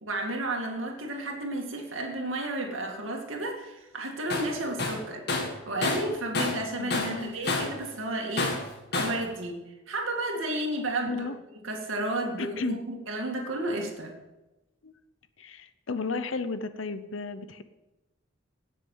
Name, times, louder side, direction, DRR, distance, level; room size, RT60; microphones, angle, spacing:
voice 1, 0.0-5.2 5.7-8.5 8.9-9.6 9.9-11.3 11.6-12.8 13.1-14.1, right 1 dB, 85° right, 1 dB, 2.2 m, -32 dB
Tools, 4.3-4.5 4.8-6.7 6.9-7.8 8.4-9.2, left 3 dB, 55° left, 1.9 m, -29 dB
voice 2, 6.8-7.4 11.1-11.4 12.4-12.8 14.8-14.9 15.4-17.6, left 4 dB, 75° left, 12 dB, 0.8 m, -33 dB
18.0 x 6.7 x 5.6 m, 1.0 s
head